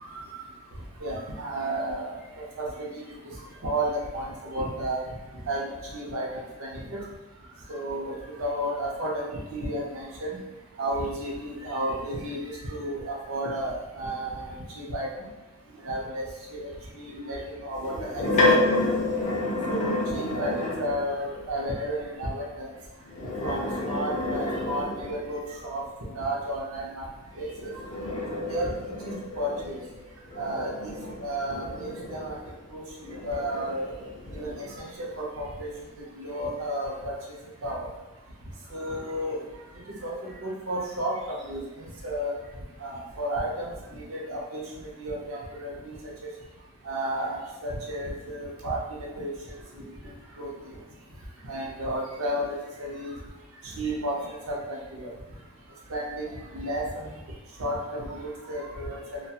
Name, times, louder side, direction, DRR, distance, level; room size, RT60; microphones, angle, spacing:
voice 1, 1.0-2.1 2.6-3.1 3.6-5.0 5.5-7.0 7.7-10.4 10.8-12.4 12.7-14.5 14.8-15.1 15.8-16.2 16.5-18.2 19.7-22.7 23.4-25.8 26.2-27.1 27.4-27.7 28.5-28.7 29.0-29.8 30.4-30.7 31.2-32.4 32.7-33.9 34.3-35.7 36.2-37.1 37.6-37.9 38.7-39.4 39.9-42.3 42.8-44.6 45.0-45.9 46.8-48.8 49.2-49.3 50.4-50.5 51.5-53.1 53.8-55.1 55.9-56.3 56.5-57.1 57.6-59.2, right 1 dB, 75° right, -3 dB, 0.6 m, -32 dB
sound 1, 17.8-21.1 23.0-25.4 27.3-32.5 33.1-34.8, left 2 dB, 35° left, 0.4 m, -29 dB
2.3 x 2.2 x 2.7 m, 1.1 s
head